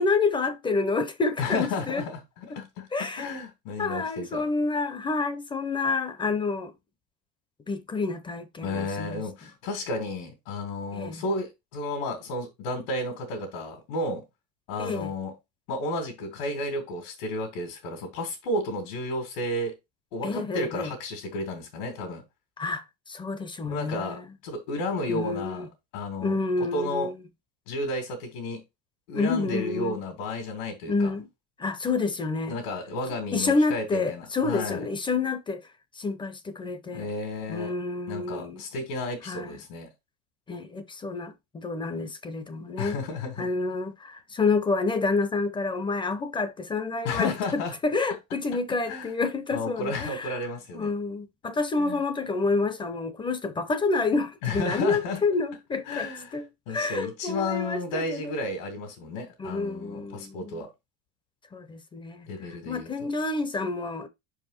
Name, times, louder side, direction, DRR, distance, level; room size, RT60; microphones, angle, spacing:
voice 1, 0.0-2.0 2.9-3.3 3.8-6.7 7.7-9.2 10.9-11.2 14.8-15.1 20.2-20.9 22.6-24.2 25.1-25.7 26.2-27.1 29.1-30.0 30.9-31.3 31.6-32.6 33.3-35.6 36.0-37.1 37.5-38.6 39.3-39.6 40.5-43.0 43.4-50.3 50.7-58.3 59.4-60.7 61.5-64.1, left 3 dB, 15° left, 0.4 m, -28 dB
voice 2, 1.4-4.5 8.6-14.2 14.7-15.3 15.7-19.7 20.1-22.2 23.6-27.1 27.7-28.6 29.1-31.1 32.5-34.8 36.9-37.7 38.1-39.9 42.8-43.5 47.0-47.7 48.8-49.1 49.5-50.9 51.8-52.0 54.4-55.2 55.9-60.7 62.3-62.9, left 2 dB, 85° left, 2.5 m, -32 dB
5.6 x 4.9 x 4.0 m
cardioid pair, 160°, 39 cm